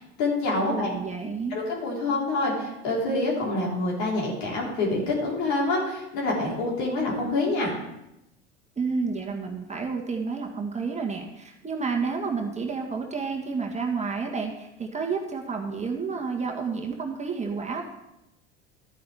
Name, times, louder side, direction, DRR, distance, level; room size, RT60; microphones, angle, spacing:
voice 1, 0.0-0.9 1.5-7.7, left 2 dB, 60° left, -3 dB, 4.2 m, -26 dB
voice 2, 0.7-1.6 8.8-17.8, right 5 dB, 20° right, 2 dB, 1.5 m, -30 dB
13.0 x 9.4 x 3.5 m, 0.86 s
figure-of-eight pair, 70°, 33 cm